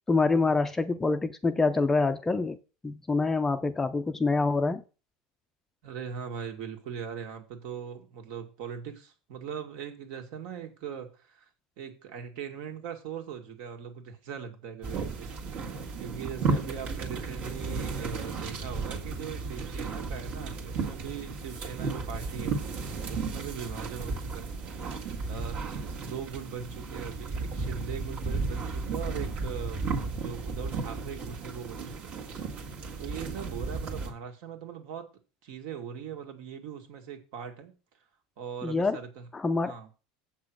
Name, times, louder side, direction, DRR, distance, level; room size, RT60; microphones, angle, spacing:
voice 1, 0.1-2.6 2.8-4.8 38.6-39.0 39.3-39.7, left 3 dB, 10° left, 9 dB, 0.5 m, -26 dB
voice 2, 5.8-11.5 11.8-22.5 23.1-32.2 33.0-35.1 35.4-37.7 38.4-39.3 39.6-39.9, right 7 dB, 60° right, 4 dB, 2.2 m, -40 dB
sound 1, 14.8-34.1, right 4 dB, 40° right, 1.8 m, -34 dB
7.8 x 6.0 x 6.3 m, 0.34 s
supercardioid pair, 155°, 3 cm